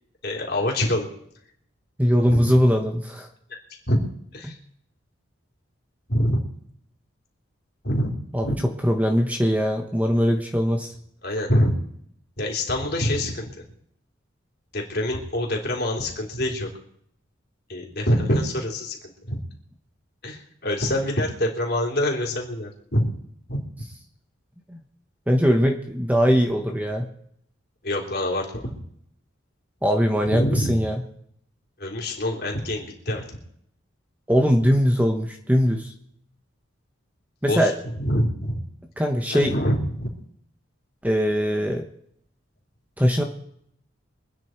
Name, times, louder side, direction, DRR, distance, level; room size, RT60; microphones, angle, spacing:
voice 1, 0.2-1.1 2.3-2.4 3.9-4.0 4.3-4.6 6.1-6.4 7.8-8.1 8.4-8.5 11.2-11.7 12.4-13.5 14.7-16.7 17.7-19.0 19.3-19.4 20.2-23.1 23.5-23.6 27.8-28.8 30.3-30.8 31.8-33.2 37.5-37.7 38.0-38.6 39.3-40.1, left 1 dB, 50° left, 0 dB, 3.6 m, -25 dB
voice 2, 2.0-3.3 4.4-4.5 8.3-8.5 8.8-10.9 24.7-24.8 25.3-27.1 29.8-31.0 34.3-35.9 37.4-37.7 39.0-39.5 41.0-41.8 43.0-43.2, equal, 5° right, 3 dB, 1.1 m, -21 dB
24.5 x 9.8 x 4.6 m, 0.70 s
head